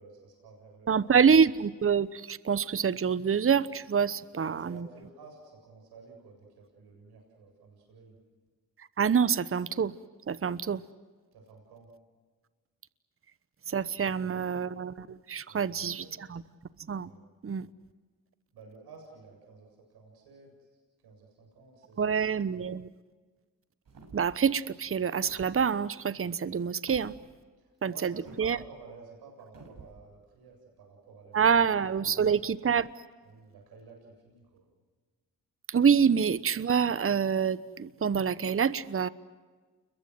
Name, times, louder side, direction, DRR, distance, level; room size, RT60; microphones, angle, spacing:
voice 1, 0.0-1.2 4.2-8.2 11.3-11.9 14.2-14.4 15.5-16.1 17.0-17.2 17.5-17.7 18.5-20.7 21.0-22.1 27.6-31.7 32.0-32.3 33.2-34.7, right 4 dB, 80° right, 1 dB, 7.8 m, -52 dB
voice 2, 0.9-4.9 9.0-9.9 10.3-10.8 13.7-16.0 16.3-16.4 16.9-17.1 17.4-17.7 22.0-22.9 24.1-27.1 27.8-28.6 31.3-32.9 35.7-39.1, right 7 dB, 35° right, 16 dB, 1.0 m, -26 dB
sound 1, 23.9-24.4 25.2-25.6 26.9-27.1 28.3-28.6 29.5-30.0, right 4 dB, 60° right, 6.7 m, -49 dB
29.5 x 22.5 x 7.9 m, 1.4 s
supercardioid pair, 45°, 38 cm